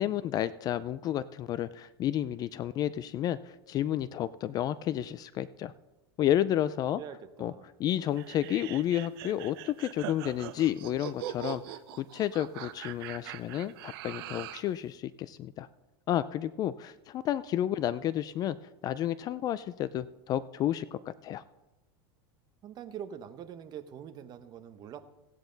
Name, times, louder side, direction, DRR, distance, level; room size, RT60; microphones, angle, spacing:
voice 1, 0.0-5.7 6.2-7.0 7.4-7.5 7.8-15.7 16.1-18.6 18.8-21.4, left 11 dB, 30° left, 16 dB, 0.3 m, -31 dB
voice 2, 6.9-7.7 22.6-25.0, right 9 dB, 30° right, 10 dB, 0.9 m, -44 dB
sound 1, 8.2-14.7, right 12 dB, 65° right, 0.7 m, -42 dB
16.0 x 9.0 x 3.9 m, 1.0 s
supercardioid pair, 140°, 13 cm